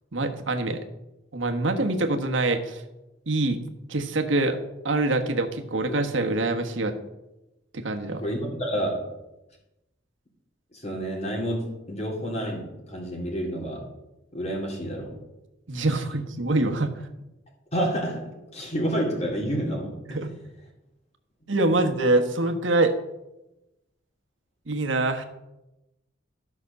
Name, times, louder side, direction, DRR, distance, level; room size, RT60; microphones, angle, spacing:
voice 1, 0.1-0.8 1.3-2.8 3.3-3.6 3.9-4.6 4.8-6.9 7.7-8.2 15.7-16.9 20.1-20.3 21.5-22.9 24.7-25.3, right 2 dB, 85° right, 5 dB, 1.3 m, -24 dB
voice 2, 8.1-9.1 10.7-13.8 14.3-15.2 17.7-18.2 18.5-20.2, equal, 35° left, -1 dB, 3.5 m, -29 dB
13.5 x 6.0 x 6.7 m, 0.95 s
head